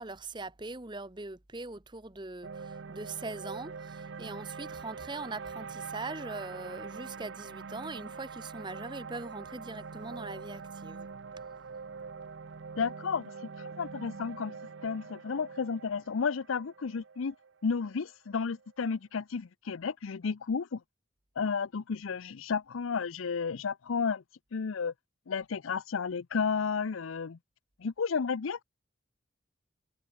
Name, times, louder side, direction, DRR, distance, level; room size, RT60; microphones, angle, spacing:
voice 1, 0.0-11.1, right 3 dB, 20° right, 0.9 m, -41 dB
sound 1, 2.4-18.7, right 5 dB, 60° right, 0.5 m, -44 dB
voice 2, 12.8-13.3 13.6-14.5 14.8-17.3 17.6-20.8 21.4-24.2 24.5-24.9 25.3-27.4 27.8-28.6, left 5 dB, 85° left, 0.6 m, -32 dB
head